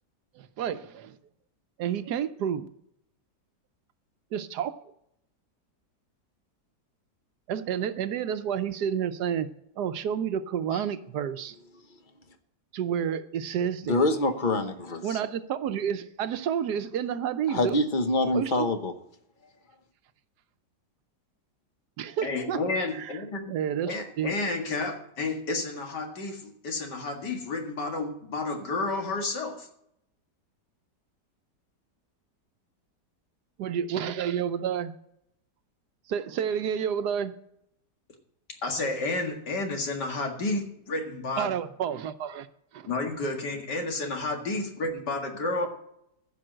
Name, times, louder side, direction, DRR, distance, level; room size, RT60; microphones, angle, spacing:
voice 1, 0.3-1.2 1.8-2.7 4.3-4.8 7.5-9.5 9.8-11.6 12.7-14.1 15.0-17.8 18.3-18.7 22.0-22.6 22.9-23.2 23.5-24.3 33.6-34.9 36.1-37.3 41.4-42.5 42.7-42.9, right 8 dB, 75° right, 12 dB, 1.2 m, -30 dB
voice 2, 13.9-15.0 17.5-18.9, left 2 dB, 35° left, 8 dB, 1.1 m, -25 dB
voice 3, 22.2-23.5 23.9-29.7 38.6-41.5 42.9-45.7, left 2 dB, 75° left, 3 dB, 2.6 m, -31 dB
15.0 x 5.4 x 7.7 m, 0.75 s
omnidirectional pair, 1.8 m